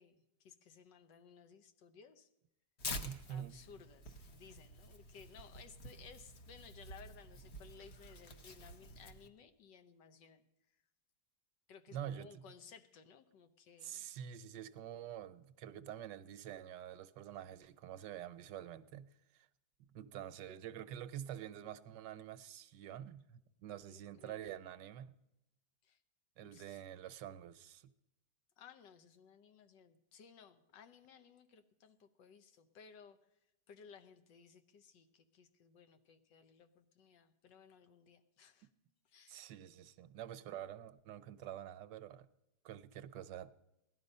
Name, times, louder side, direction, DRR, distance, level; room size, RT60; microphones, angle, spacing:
voice 1, 0.0-2.3 3.3-10.8 11.7-14.1 23.7-24.5 25.8-26.0 26.4-26.8 28.6-33.4 33.7-38.7 39.0-39.4, left 6 dB, 80° left, 1.6 m, -59 dB
Tearing, 2.8-9.3, left 2 dB, 45° left, 1.1 m, -49 dB
voice 2, 3.0-3.6 11.9-12.4 13.8-19.5 19.9-25.2 26.4-27.9 39.3-42.3 42.6-43.5, right 10 dB, 80° right, 1.3 m, -47 dB
17.5 x 11.5 x 5.4 m
omnidirectional pair, 1.9 m